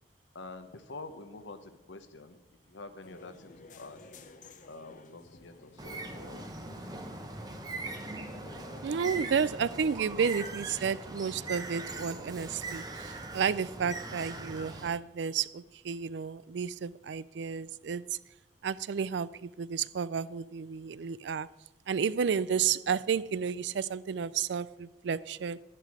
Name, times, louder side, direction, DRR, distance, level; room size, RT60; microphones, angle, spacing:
voice 1, 0.3-2.4 2.7-4.0 4.7-6.5 9.8-10.0 22.9-23.0, left 3 dB, 85° left, 1.0 m, -47 dB
sound 1, 3.0-8.8, left 2 dB, 45° left, 0.7 m, -53 dB
Bird, 5.8-14.9, right 2 dB, 20° right, 0.9 m, -41 dB
voice 2, 8.8-18.2 18.6-21.5 21.9-25.6, right 6 dB, 75° right, 0.4 m, -32 dB
11.5 x 10.0 x 4.8 m
head